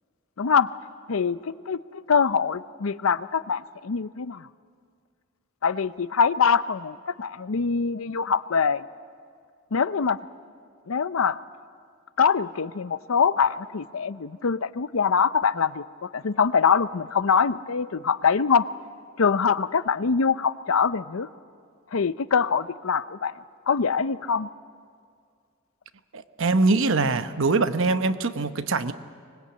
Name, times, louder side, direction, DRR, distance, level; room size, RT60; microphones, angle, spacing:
voice 1, 0.4-0.7 1.1-4.5 5.6-8.8 9.7-10.2 10.9-11.4 12.2-18.7 19.2-21.3 21.9-23.3 23.7-24.5, left 6 dB, 70° left, 15 dB, 0.6 m, -24 dB
voice 2, 26.1-28.9, right 3 dB, 65° right, 11 dB, 0.9 m, -23 dB
24.5 x 20.0 x 8.7 m, 2.2 s
head